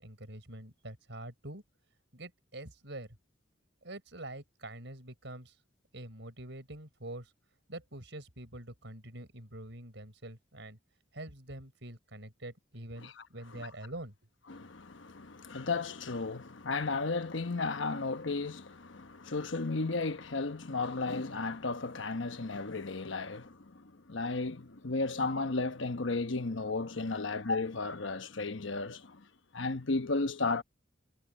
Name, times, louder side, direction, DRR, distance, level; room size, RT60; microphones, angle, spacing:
voice 1, 0.0-1.6 2.1-3.2 3.8-5.5 5.9-7.3 7.7-10.8 11.1-14.1, right 1 dB, 65° right, 5.8 m, -45 dB
voice 2, 14.5-29.3 29.5-30.6, left 3 dB, 70° left, 1.1 m, -34 dB
head